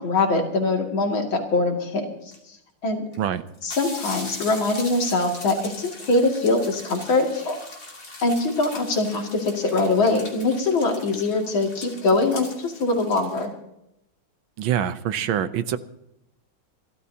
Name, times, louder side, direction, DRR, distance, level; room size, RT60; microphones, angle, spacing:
voice 1, 0.0-2.1 2.8-3.0 3.6-7.6 8.2-13.5, left 3 dB, 75° left, 1 dB, 3.2 m, -23 dB
sound 1, 2.3-2.4 3.1-3.2 3.5-13.4, left 2 dB, 40° left, 3.1 m, -40 dB
voice 2, 14.6-15.8, right 10 dB, 75° right, 12 dB, 1.6 m, -25 dB
27.0 x 13.0 x 2.8 m, 0.83 s
omnidirectional pair, 2.2 m